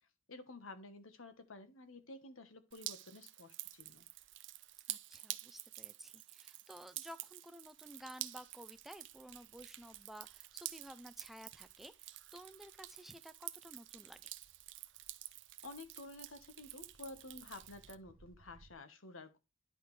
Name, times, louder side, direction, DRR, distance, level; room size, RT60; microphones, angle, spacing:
voice 1, 0.3-4.0 15.6-19.4, left 2 dB, 80° left, 1.3 m, -52 dB
Drip, 2.7-18.0, right 16 dB, 60° right, 0.6 m, -49 dB
sound 1, 3.7-4.8 7.3-7.4 7.6-18.8, right 2 dB, 85° right, 0.9 m, -70 dB
voice 2, 4.9-14.4, equal, ahead, 0.4 m, -54 dB
11.0 x 5.0 x 3.2 m
head